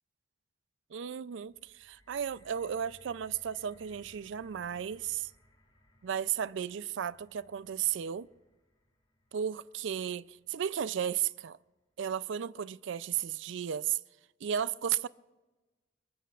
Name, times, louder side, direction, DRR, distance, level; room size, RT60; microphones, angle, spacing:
voice 1, 0.9-5.3 6.0-8.3 9.3-11.6 12.0-14.0 14.4-15.1, right 9 dB, 70° right, 0.4 m, -34 dB
sound 1, 1.4-11.6 12.4-12.5, equal, 30° left, 4.9 m, -64 dB
25.0 x 22.5 x 2.4 m
head